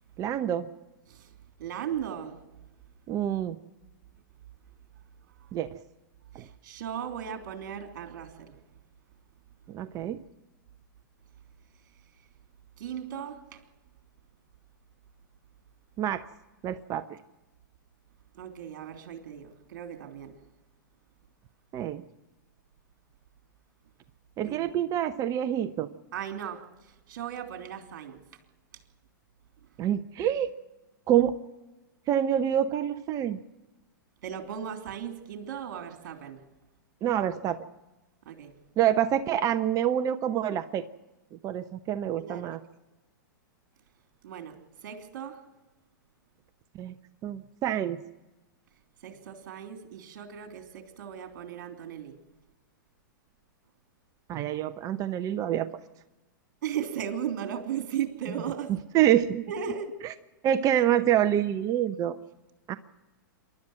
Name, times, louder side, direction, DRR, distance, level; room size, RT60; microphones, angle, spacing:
voice 1, 0.2-0.7 3.1-3.6 5.5-5.8 6.3-6.5 9.7-10.2 16.0-16.3 16.6-17.2 21.7-22.0 24.4-25.9 29.8-30.5 31.1-31.4 32.1-33.4 37.0-37.6 38.8-40.9 41.4-42.6 46.7-46.9 47.2-48.0 54.3-55.7 58.9-59.4 60.4-62.2 62.7-62.8, right 10 dB, 30° right, 10 dB, 0.8 m, -26 dB
voice 2, 1.6-2.4 5.4-5.5 6.3-8.5 12.8-13.6 18.3-20.4 24.4-24.7 26.1-28.2 34.2-36.4 38.2-38.5 42.1-42.5 44.2-45.4 49.0-52.1 56.6-58.7 59.5-60.0, right 8 dB, 60° right, 5 dB, 3.1 m, -37 dB
27.5 x 12.0 x 7.8 m, 1.1 s
hypercardioid pair, 115°, 11 cm